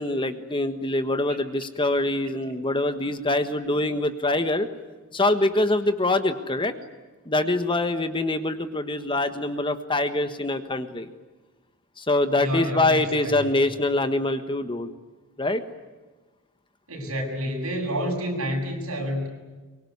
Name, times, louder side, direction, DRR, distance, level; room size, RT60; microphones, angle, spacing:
voice 1, 0.0-4.7 5.1-6.7 7.3-11.1 12.0-14.9 15.4-15.6, left 2 dB, 20° left, 9 dB, 1.4 m, -24 dB
voice 2, 12.4-13.5 16.9-19.3, equal, 70° right, 1 dB, 7.8 m, -29 dB
24.5 x 23.0 x 9.6 m, 1.2 s
head